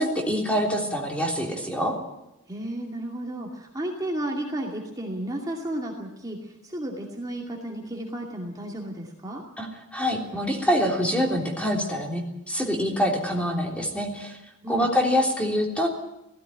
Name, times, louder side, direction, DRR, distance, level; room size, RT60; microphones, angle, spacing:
voice 1, 0.0-1.9 9.6-14.4 14.7-15.9, equal, 5° left, 1 dB, 3.4 m, -25 dB
voice 2, 2.5-9.4 14.6-14.9, right 1 dB, 20° right, -1 dB, 2.4 m, -33 dB
17.0 x 16.0 x 9.9 m, 0.92 s
head